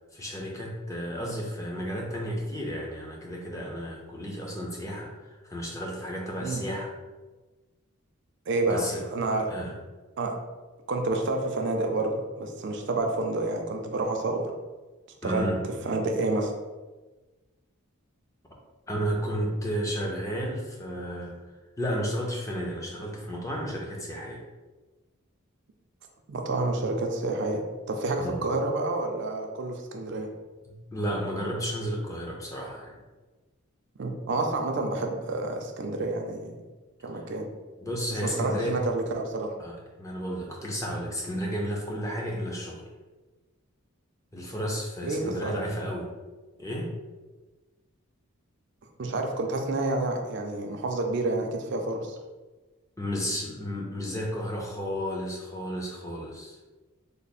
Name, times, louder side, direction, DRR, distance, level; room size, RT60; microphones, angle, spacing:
voice 1, 0.1-6.9 8.7-9.0 9.5-9.8 15.2-15.6 18.9-21.4 21.8-24.4 28.2-28.4 30.7-33.0 37.8-38.8 39.6-42.8 44.3-46.1 46.6-46.9 53.0-56.6, equal, 15° left, -2 dB, 0.5 m, -32 dB
voice 2, 8.5-8.8 9.1-9.5 10.2-10.3 10.9-14.5 15.2-15.5 15.8-16.5 26.3-30.3 34.0-36.5 37.0-37.5 38.4-39.5 45.0-45.5 49.0-52.2, right 2 dB, 55° right, 3 dB, 0.4 m, -29 dB
3.3 x 2.0 x 4.0 m, 1.2 s
head